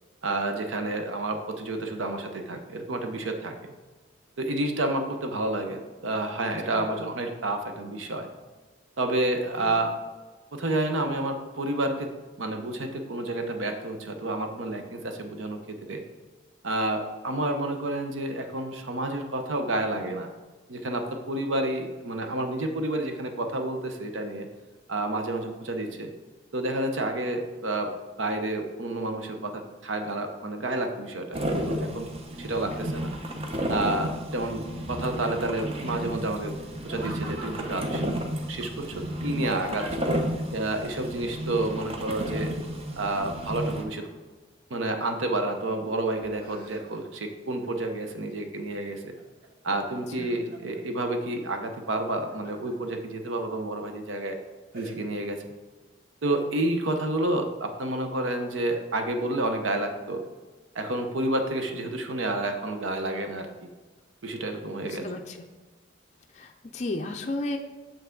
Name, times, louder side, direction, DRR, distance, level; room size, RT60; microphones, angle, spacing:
voice 1, 0.2-3.5 4.4-8.3 9.0-10.0 10.5-16.0 16.6-20.3 20.7-24.5 24.9-26.1 26.5-27.9 28.2-32.1 32.4-33.1 33.7-36.6 36.8-38.2 38.5-40.1 40.5-42.5 43.0-44.1 44.7-49.2 49.6-54.4 54.7-55.4 56.2-60.2 60.7-63.7 64.2-65.1, right 2 dB, 85° right, 5 dB, 0.8 m, -30 dB
sound 1, 31.3-43.8, equal, 30° right, 0.7 m, -32 dB
Laughter, 36.8-37.9 38.8-40.2 41.9-42.4 42.7-44.3 44.9-45.5 45.9-47.2 47.6-48.2 48.7-49.5 49.9-50.8 51.9-52.7 53.3-53.4 53.9-54.2 54.7-55.0, right 2 dB, 50° right, 1.4 m, -46 dB
voice 2, 64.7-65.4 66.3-67.6, left 2 dB, 35° left, 3 dB, 0.4 m, -34 dB
6.9 x 5.7 x 3.8 m, 1.3 s
head